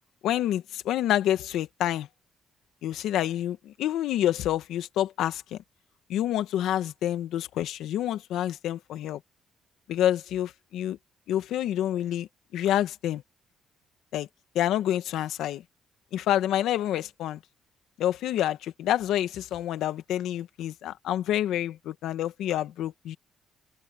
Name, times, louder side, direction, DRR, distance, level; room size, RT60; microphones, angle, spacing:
voice 1, 0.2-2.1 2.8-5.6 6.1-9.2 9.9-11.0 11.3-13.2 14.1-14.3 14.5-15.6 16.1-17.4 18.0-23.2, left 12 dB, 85° left, 1.6 m, -28 dB
open air
cardioid pair, 85°, 0 cm